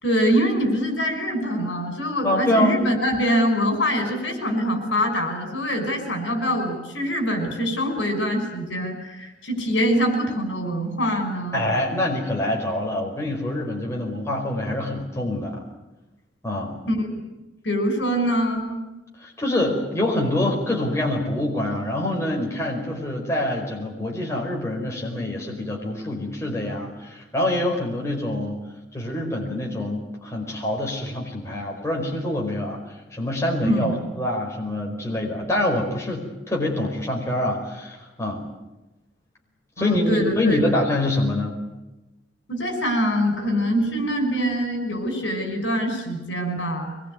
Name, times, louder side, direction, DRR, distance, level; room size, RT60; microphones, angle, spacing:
voice 1, 0.0-11.6 16.9-17.1 17.6-18.8 33.6-33.9 39.8-40.6 42.5-46.9, equal, 70° left, 6 dB, 5.8 m, -24 dB
voice 2, 2.2-2.8 11.5-15.6 16.4-16.7 19.2-28.6 28.9-38.4 39.8-41.6, left 1 dB, 15° left, -1 dB, 5.0 m, -25 dB
24.0 x 21.5 x 9.5 m, 1.0 s
head